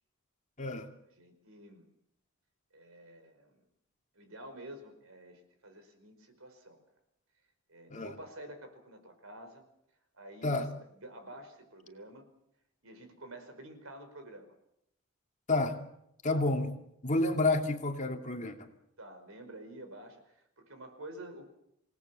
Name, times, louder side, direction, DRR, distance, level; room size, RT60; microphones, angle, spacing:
voice 1, 1.1-1.9 2.7-3.6 4.1-6.8 7.7-9.6 10.1-12.3 12.8-14.5 16.3-16.5 19.0-21.5, right 1 dB, 75° right, 8 dB, 5.0 m, -49 dB
voice 2, 16.2-16.7 17.0-18.7, left 2 dB, 35° left, 4 dB, 2.6 m, -29 dB
27.5 x 18.5 x 7.0 m, 0.77 s
head